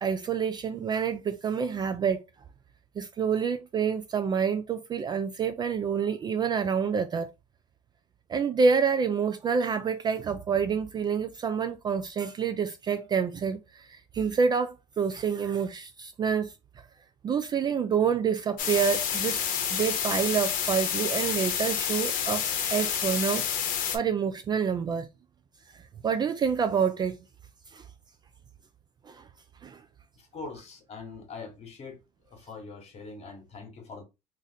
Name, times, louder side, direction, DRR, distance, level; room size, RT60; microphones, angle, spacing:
voice 1, 0.0-2.2 3.0-7.3 8.3-16.5 17.2-19.4 19.7-22.4 22.7-23.4 23.9-25.1 26.0-27.2 27.7-27.8 29.1-29.2 29.6-29.8, right 6 dB, 25° right, 0.3 m, -27 dB
sound 1, 18.6-24.0, left 8 dB, 55° left, 0.9 m, -29 dB
voice 2, 30.2-32.0 32.3-34.0, left 4 dB, 40° left, 1.3 m, -43 dB
2.6 x 2.5 x 4.0 m
supercardioid pair, 105°, 17 cm